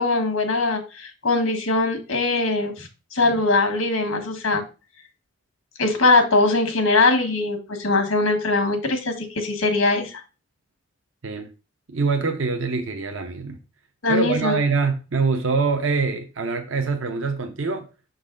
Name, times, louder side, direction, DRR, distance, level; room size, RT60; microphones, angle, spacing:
voice 1, 0.0-4.6 5.8-10.2 14.0-14.6, left 3 dB, 90° left, 1.5 m, -21 dB
voice 2, 11.9-13.6 14.1-17.9, right 4 dB, 70° right, 0.7 m, -24 dB
6.4 x 4.0 x 3.8 m
head